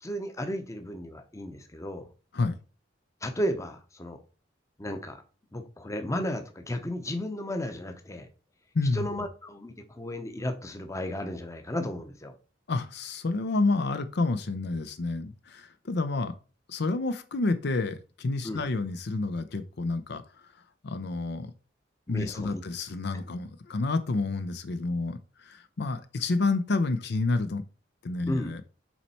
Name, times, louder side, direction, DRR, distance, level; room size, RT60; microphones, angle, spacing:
voice 1, 0.0-2.1 3.2-4.2 4.8-5.2 5.5-8.3 8.9-12.3 18.4-18.6 22.1-22.6 28.3-28.5, equal, 15° left, 6 dB, 0.8 m, -34 dB
voice 2, 8.7-9.2 12.7-16.3 16.7-21.5 22.1-27.7 28.0-28.6, left 3 dB, 65° left, 11 dB, 0.6 m, -29 dB
7.1 x 4.5 x 4.3 m, 0.35 s
head